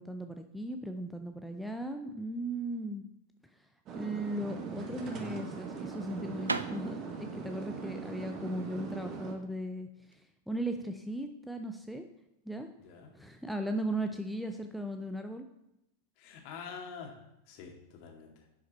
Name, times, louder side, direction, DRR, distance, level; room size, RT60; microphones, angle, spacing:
voice 1, 0.0-3.0 3.5-3.7 3.9-12.1 12.5-12.7 13.1-15.5, right 1 dB, ahead, 5 dB, 0.6 m, -37 dB
sound 1, 3.9-9.3, right 5 dB, 35° right, 1.4 m, -41 dB
sound 2, 5.3-10.2, right 3 dB, 80° right, 0.5 m, -41 dB
voice 2, 12.8-13.1 16.2-17.1 17.5-18.4, left 6 dB, 45° left, 1 dB, 2.0 m, -46 dB
10.5 x 6.0 x 4.1 m, 0.86 s
figure-of-eight pair, 90°, 0 cm